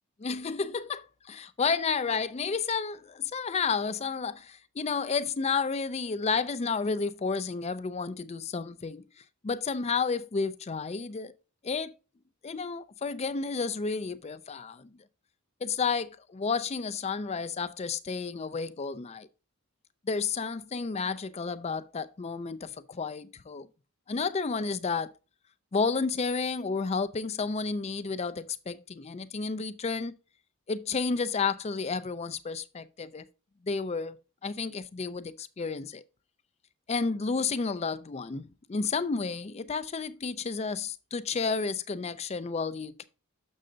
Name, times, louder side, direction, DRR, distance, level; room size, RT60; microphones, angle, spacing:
voice 1, 0.2-9.0 9.4-11.3 11.6-11.9 12.4-14.9 15.6-19.3 20.1-23.7 24.1-25.1 25.7-30.1 30.7-33.3 33.6-34.2 34.4-36.0 36.9-43.0, left 5 dB, 30° left, 0.4 m, -31 dB
6.6 x 6.4 x 3.8 m
head